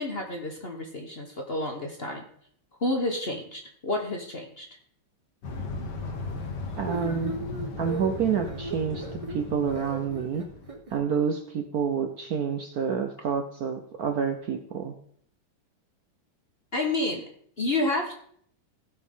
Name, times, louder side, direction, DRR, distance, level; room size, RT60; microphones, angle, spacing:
voice 1, 0.0-2.2 2.8-4.7 16.7-17.2 17.6-18.1, left 2 dB, 35° left, 2 dB, 1.1 m, -29 dB
sound 1, 5.4-10.8, left 3 dB, 60° left, 1.8 m, -37 dB
voice 2, 6.8-7.4 7.8-10.5 10.9-14.9, right 7 dB, 60° right, 6 dB, 1.0 m, -28 dB
sound 2, 6.9-11.0, right 2 dB, 30° right, 0.6 m, -37 dB
16.0 x 6.1 x 3.7 m, 0.63 s
omnidirectional pair, 2.2 m